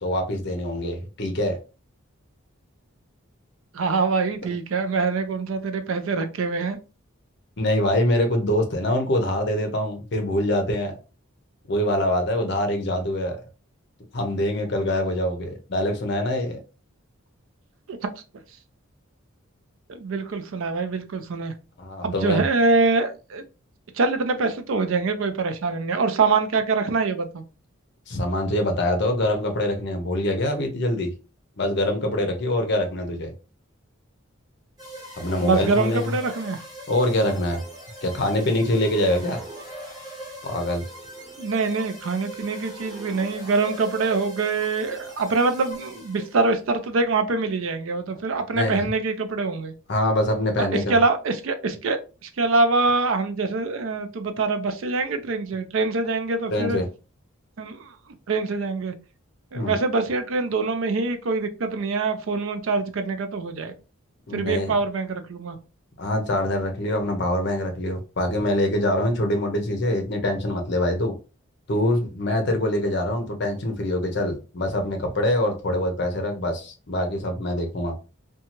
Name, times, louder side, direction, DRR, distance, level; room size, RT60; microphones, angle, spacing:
voice 1, 0.0-1.6 7.6-10.9 11.7-13.4 14.1-16.6 21.8-22.4 28.1-31.1 31.6-33.3 35.2-36.1 36.9-37.6 38.0-39.4 40.4-40.8 48.5-48.8 49.9-51.0 56.5-56.9 59.5-59.7 64.3-64.7 66.0-71.1 71.7-77.9, left 1 dB, 50° left, 0.6 m, -24 dB
voice 2, 3.7-6.8 17.9-18.0 19.9-21.5 22.0-23.4 23.9-27.4 35.4-36.6 41.4-49.7 50.6-56.8 57.6-58.0 58.3-58.9 59.5-63.7 64.3-65.6, right 3 dB, 70° right, 0.4 m, -24 dB
sound 1, 34.8-46.5, right 1 dB, 20° right, 0.9 m, -40 dB
2.7 x 2.3 x 2.9 m
head